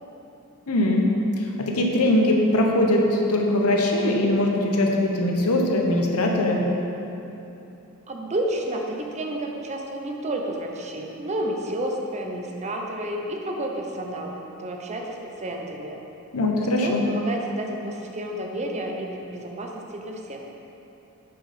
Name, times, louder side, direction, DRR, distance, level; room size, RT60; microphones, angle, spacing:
voice 1, 0.7-6.6 16.3-17.0, left 1 dB, 75° left, 0 dB, 1.0 m, -21 dB
voice 2, 8.1-16.0 16.8-20.4, right 1 dB, 30° right, 1 dB, 0.7 m, -31 dB
9.0 x 5.6 x 4.3 m, 3.0 s
head